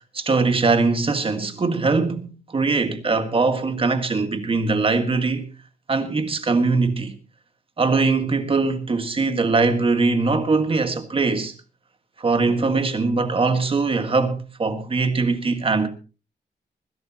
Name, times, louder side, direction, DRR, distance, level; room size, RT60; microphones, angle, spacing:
voice 1, 0.1-5.5 5.9-7.2 7.8-11.5 12.2-15.9, right 3 dB, 30° right, 1.7 m, -21 dB
21.0 x 16.0 x 2.9 m
wide cardioid pair, 175°, 18 cm